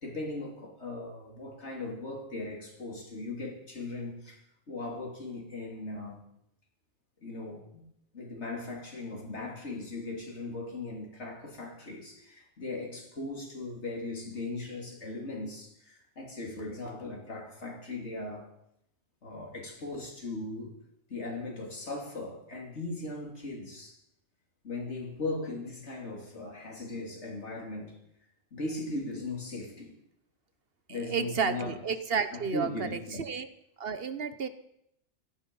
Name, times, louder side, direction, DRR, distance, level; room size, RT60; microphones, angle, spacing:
voice 1, 0.0-4.4 4.7-6.2 7.2-7.8 8.1-18.5 19.2-20.7 21.1-24.0 24.6-28.0 28.5-30.0 30.9-31.7 32.3-33.2, left 2 dB, 75° left, 0 dB, 3.4 m, -38 dB
voice 2, 30.9-33.5 33.8-34.5, right 6 dB, 55° right, 11 dB, 1.1 m, -32 dB
16.5 x 13.0 x 5.4 m, 0.77 s
omnidirectional pair, 1.2 m